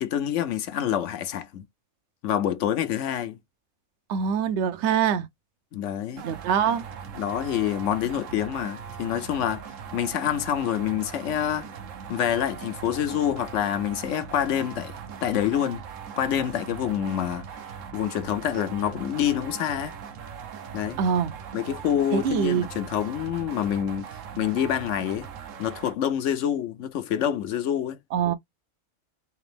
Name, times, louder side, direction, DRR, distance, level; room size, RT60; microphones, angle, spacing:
voice 1, 0.0-1.6 2.2-3.4 5.7-6.2 7.1-9.7 9.9-11.7 12.1-15.8 16.2-17.4 17.9-20.0 20.7-21.0 21.5-24.1 24.4-25.3 25.6-28.0, left 10 dB, 75° left, 1.0 m, -27 dB
voice 2, 4.1-5.3 6.2-6.8 21.0-21.3 22.1-22.6 28.1-28.3, right 7 dB, 70° right, 0.8 m, -24 dB
sound 1, 6.2-26.0, right 7 dB, 85° right, 1.1 m, -40 dB
3.4 x 2.9 x 3.4 m
omnidirectional pair, 1.3 m